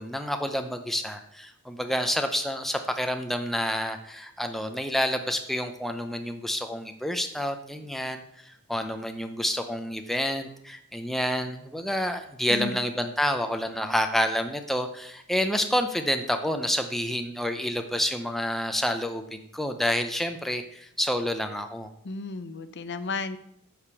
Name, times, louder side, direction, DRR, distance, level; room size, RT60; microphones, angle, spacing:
voice 1, 0.0-21.9, equal, ahead, 6 dB, 0.6 m, -29 dB
voice 2, 12.5-12.8 22.0-23.4, left 3 dB, 50° left, 12 dB, 0.6 m, -33 dB
8.5 x 5.0 x 6.9 m, 0.73 s
head